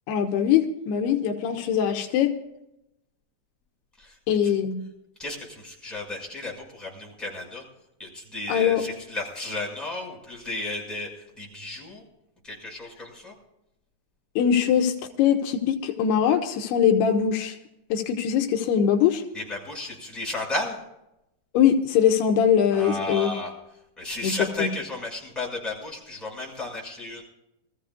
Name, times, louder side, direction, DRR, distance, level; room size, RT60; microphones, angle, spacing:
voice 1, 0.1-2.3 4.3-4.8 8.5-8.8 14.4-17.6 17.9-19.2 21.5-23.3 24.2-24.7, left 8 dB, 85° left, 4 dB, 3.1 m, -22 dB
voice 2, 5.2-7.6 8.0-12.0 12.4-13.3 19.3-20.8 22.7-23.5 24.0-27.2, left 2 dB, ahead, -4 dB, 5.3 m, -33 dB
24.5 x 15.0 x 2.4 m, 0.86 s
omnidirectional pair, 4.6 m